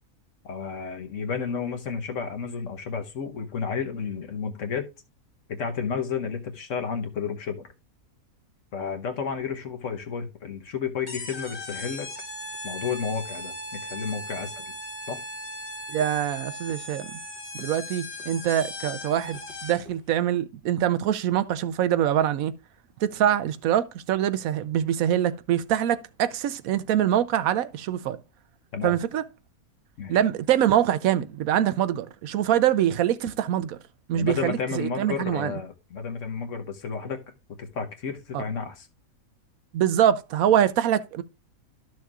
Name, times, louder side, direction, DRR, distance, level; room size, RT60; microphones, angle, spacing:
voice 1, 0.4-4.9 5.5-7.7 8.7-12.1 12.6-14.7 15.1-15.2 28.7-29.0 30.0-30.2 34.1-38.9, left 6 dB, 60° left, 1.3 m, -32 dB
sound 1, 11.1-20.0, left 1 dB, 30° left, 1.2 m, -38 dB
voice 2, 15.9-17.2 17.5-22.5 23.0-28.2 28.8-29.2 30.1-33.8 34.1-35.5 38.3-38.4 39.7-41.2, right 10 dB, 75° right, 1.0 m, -24 dB
12.5 x 6.4 x 2.4 m
omnidirectional pair, 1.5 m